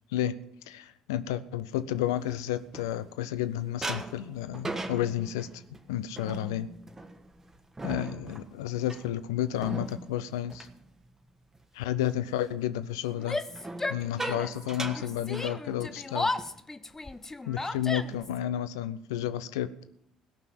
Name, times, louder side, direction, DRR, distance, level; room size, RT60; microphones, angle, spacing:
voice 1, 0.7-5.5 5.9-6.7 7.8-10.7 11.7-13.4 13.9-16.3 17.5-19.7, left 11 dB, 80° left, 14 dB, 0.6 m, -31 dB
sound 1, 1.9-3.4 3.8-11.6 12.0-12.3 13.5-16.1 16.4-16.6 16.9-17.2 17.7-18.3, right 2 dB, 20° right, 1.6 m, -40 dB
Yell, 13.2-14.6 14.9-18.4, left 2 dB, 20° left, 0.8 m, -34 dB
17.0 x 5.8 x 7.7 m, 0.74 s
hypercardioid pair, 55°, 2 cm